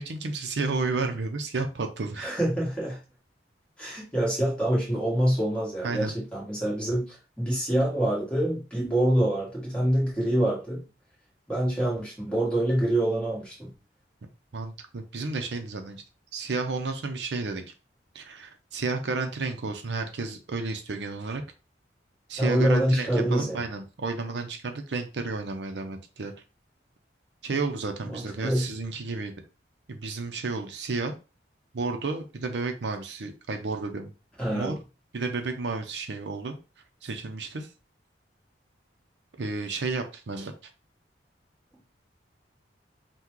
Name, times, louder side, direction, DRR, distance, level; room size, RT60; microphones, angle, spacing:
voice 1, 0.0-2.3 5.8-6.2 14.5-16.0 16.3-17.7 18.1-21.4 22.3-26.3 27.4-29.3 29.9-31.2 31.7-34.1 34.5-34.7 35.1-36.6 37.0-37.7 39.4-40.5, right 3 dB, 70° right, 5 dB, 0.6 m, -32 dB
voice 2, 2.2-3.0 3.8-10.8 11.5-13.7 22.4-23.6 28.0-28.7 34.4-34.8, right 1 dB, 5° left, -5 dB, 1.6 m, -26 dB
5.7 x 2.3 x 3.0 m, 0.31 s
head